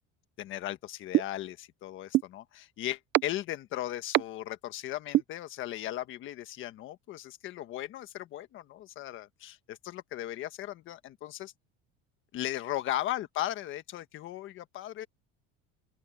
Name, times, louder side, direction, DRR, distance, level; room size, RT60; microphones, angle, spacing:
voice 1, 0.4-11.5 12.3-15.1, left 13 dB, 40° left, 1.4 m, -37 dB
sound 1, 1.1-1.2 2.1-2.2 3.1-3.2 4.1-4.2 5.1-5.2, right 16 dB, 35° right, 0.5 m, -21 dB
open air
cardioid pair, 175°, 31 cm